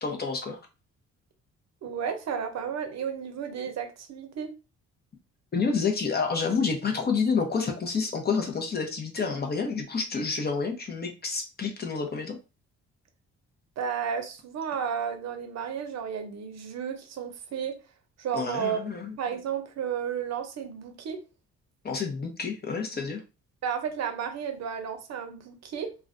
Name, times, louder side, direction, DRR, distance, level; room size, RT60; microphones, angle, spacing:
voice 1, 0.0-0.6 5.5-12.4 18.3-19.2 21.8-23.2, left 5 dB, 35° left, 0.6 m, -29 dB
voice 2, 1.8-4.5 13.8-17.8 18.2-18.8 19.2-21.2 23.6-25.9, right 7 dB, 60° right, 0.7 m, -32 dB
2.3 x 2.1 x 2.5 m
cardioid pair, 90°, 30 cm